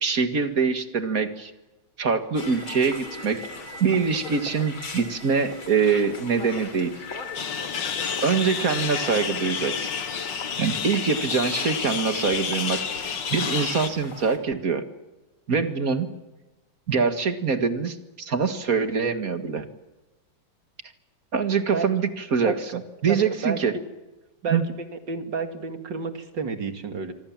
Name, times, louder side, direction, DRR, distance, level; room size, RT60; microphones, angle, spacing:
voice 1, 0.0-1.5 2.0-3.4 3.8-6.9 8.2-9.9 10.6-14.8 15.5-16.1 16.9-19.7 21.3-23.7 24.5-24.6, right 5 dB, 45° right, 8 dB, 2.2 m, -24 dB
sound 1, 2.3-14.4, left 3 dB, 80° left, 4.1 m, -39 dB
sound 2, 7.3-13.9, left 6 dB, 65° left, 2.2 m, -30 dB
voice 2, 25.1-27.1, right 5 dB, 60° right, 7 dB, 2.9 m, -30 dB
26.0 x 24.0 x 7.4 m, 1.1 s
omnidirectional pair, 2.2 m